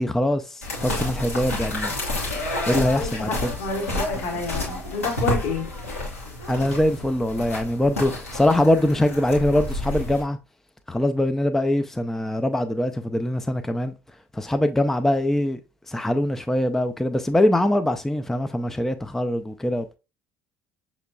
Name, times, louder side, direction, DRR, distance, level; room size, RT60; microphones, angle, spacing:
voice 1, 0.0-2.0 2.7-3.5 6.5-10.4 10.9-13.9 14.3-15.6 15.9-20.0, left 1 dB, 5° left, 0.4 m, -23 dB
sound 1, 0.6-10.2, left 1 dB, 85° left, 1.3 m, -30 dB
voice 2, 2.8-5.7, left 4 dB, 60° left, 1.2 m, -29 dB
5.8 x 3.0 x 2.3 m
figure-of-eight pair, 60°, 7 cm